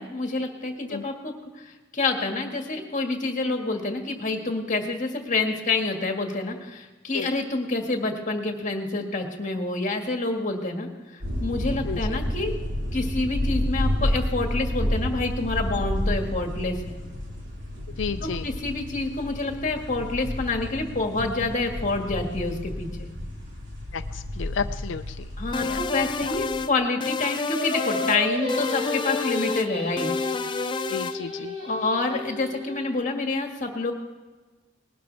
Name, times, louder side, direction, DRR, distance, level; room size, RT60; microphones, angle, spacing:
voice 1, 0.0-10.9 11.4-12.5 12.9-17.0 18.2-23.1 25.4-30.1 31.6-33.9, left 3 dB, 40° left, 3 dB, 1.8 m, -27 dB
sound 1, 11.2-26.6, left 1 dB, 70° right, 3.4 m, -30 dB
voice 2, 11.9-12.2 18.0-18.5 23.9-25.2 25.6-25.8 26.2-26.3 30.9-31.5, left 5 dB, 85° left, 9 dB, 0.5 m, -32 dB
sound 2, 25.5-26.7 27.0-28.2 28.5-29.7 30.0-31.2, left 4 dB, 25° left, 0.3 m, -30 dB
Singing, 27.5-32.9, left 1 dB, 35° right, 4.5 m, -32 dB
20.0 x 12.0 x 3.4 m, 1.3 s
head